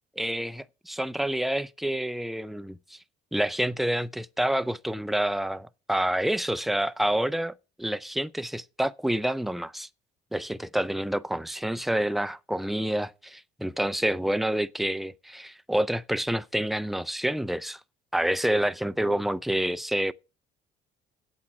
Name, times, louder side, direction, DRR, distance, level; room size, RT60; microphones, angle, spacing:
voice 1, 0.2-3.0 3.3-9.9 10.3-17.8 18.1-20.1, right 1 dB, ahead, 0.4 m, -28 dB
8.5 x 7.4 x 5.8 m
cardioid pair, 110°, 17 cm